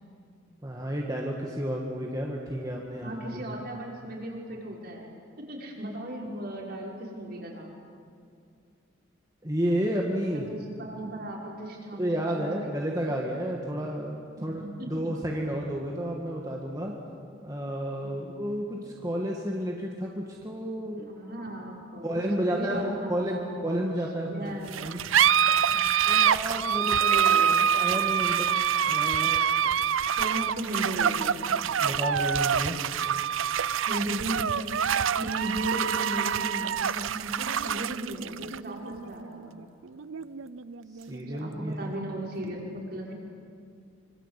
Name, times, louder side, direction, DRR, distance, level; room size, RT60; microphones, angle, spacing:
voice 1, 0.6-3.2 9.4-10.5 12.0-16.9 17.4-21.1 22.0-25.0 26.1-27.2 27.7-28.5 28.9-29.7 31.8-32.8 40.9-41.9, equal, 20° right, -1 dB, 2.0 m, -31 dB
voice 2, 3.0-7.7 10.5-12.8 14.4-15.1 18.0-18.4 21.1-23.5 24.3-25.8 26.1-26.5 27.1-27.6 30.2-31.6 33.8-34.5 34.8-39.6 41.3-43.1, right 1 dB, 50° right, -2 dB, 5.9 m, -37 dB
sound 1, 24.7-41.7, right 8 dB, 80° right, 0.6 m, -26 dB
26.0 x 26.0 x 8.5 m, 2.3 s
head